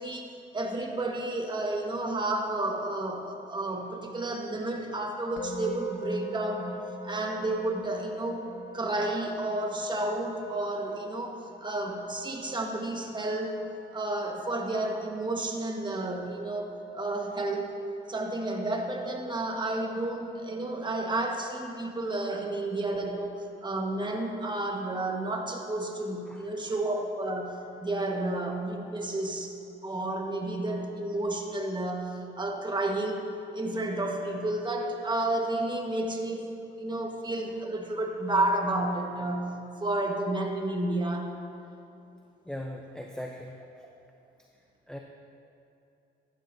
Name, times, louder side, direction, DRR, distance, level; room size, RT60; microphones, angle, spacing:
voice 1, 0.0-6.8 7.0-8.4 8.7-11.4 11.6-13.6 13.9-17.8 18.1-29.6 29.8-33.3 33.5-36.5 36.8-41.3, right 2 dB, 20° right, 1 dB, 1.4 m, -31 dB
Musical instrument, 5.4-16.5, equal, 80° left, 0.9 m, -44 dB
voice 2, 26.3-26.8 42.5-43.8 44.9-45.0, left 1 dB, 5° left, 1 dB, 0.6 m, -40 dB
15.0 x 11.5 x 2.7 m, 2.8 s
cardioid pair, 90°, 20 cm